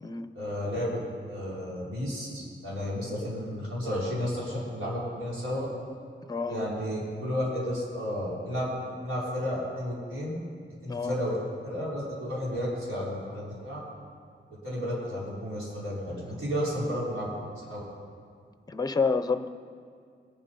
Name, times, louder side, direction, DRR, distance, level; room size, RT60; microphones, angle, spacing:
voice 1, 0.3-5.7 6.5-8.7 9.0-10.4 10.8-13.8 14.6-17.3 17.7-17.8, equal, 90° right, -7 dB, 4.3 m, -32 dB
voice 2, 6.3-6.6 10.9-11.2 18.7-19.5, left 4 dB, 20° left, 10 dB, 0.5 m, -28 dB
22.0 x 7.4 x 5.4 m, 2.2 s
wide cardioid pair, 155°, 21 cm